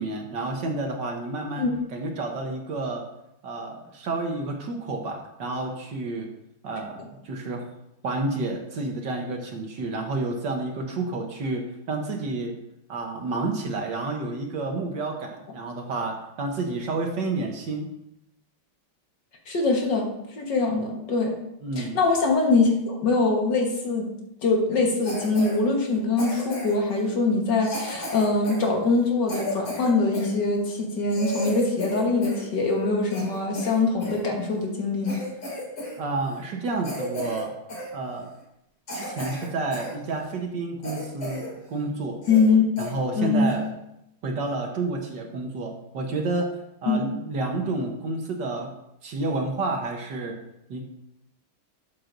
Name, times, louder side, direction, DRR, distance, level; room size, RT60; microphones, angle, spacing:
voice 1, 0.0-3.0 3.4-6.3 6.6-7.6 8.0-12.5 12.9-17.9 21.6-22.0 36.0-37.5 37.9-38.3 38.9-42.2 42.8-43.7 44.2-46.5 46.8-48.7 49.0-50.4 50.7-50.8, right 3 dB, 60° right, 2 dB, 1.7 m, -30 dB
voice 2, 19.5-21.3 21.8-24.1 24.4-35.2 42.3-42.6 43.2-43.5 46.9-47.1, left 3 dB, 60° left, 1 dB, 2.0 m, -23 dB
Cough, 25.0-25.6 26.2-26.9 27.6-30.3 30.8-30.9 31.1-32.5 32.8-34.2 34.7-34.8 35.0-36.0 36.2-36.4 36.8-37.4 37.7-37.9 38.4-38.5 38.9-39.9 40.3-40.4 40.8-41.5 41.8-41.9 42.2-42.5 42.8-42.9 43.5-43.7, left 1 dB, 85° left, 3.7 m, -34 dB
12.5 x 7.8 x 2.6 m, 0.84 s
omnidirectional pair, 2.3 m